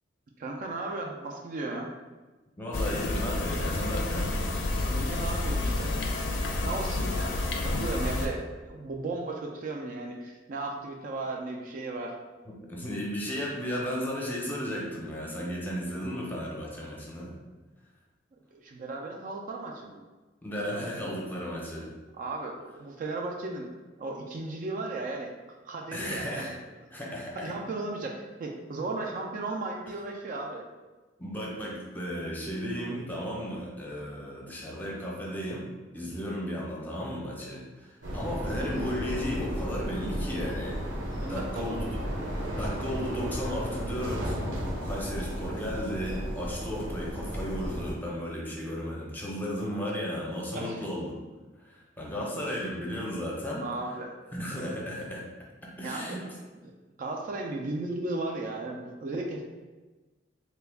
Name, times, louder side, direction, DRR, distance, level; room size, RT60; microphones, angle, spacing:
voice 1, 0.4-1.9 4.9-6.0 6.6-7.4 7.6-12.2 18.5-20.0 22.1-23.7 24.0-25.3 25.7-26.6 26.9-30.7 41.2-41.8 42.5-42.7 50.5-50.9 53.6-54.1 55.8-56.3 56.6-59.4, right 2 dB, 45° right, 1 dB, 0.3 m, -36 dB
voice 2, 2.6-4.3 12.7-17.4 20.4-21.9 25.9-26.5 26.9-27.6 31.2-35.7 35.9-41.0 41.3-42.0 42.6-44.4 44.8-51.1 51.6-53.6 54.3-55.3 55.6-56.2, equal, 10° left, -4 dB, 0.6 m, -34 dB
sound 1, 2.7-8.3, left 2 dB, 75° left, 0.5 m, -29 dB
sound 2, 38.0-47.9, equal, 75° right, 0.8 m, -34 dB
3.2 x 2.2 x 3.4 m, 1.2 s
head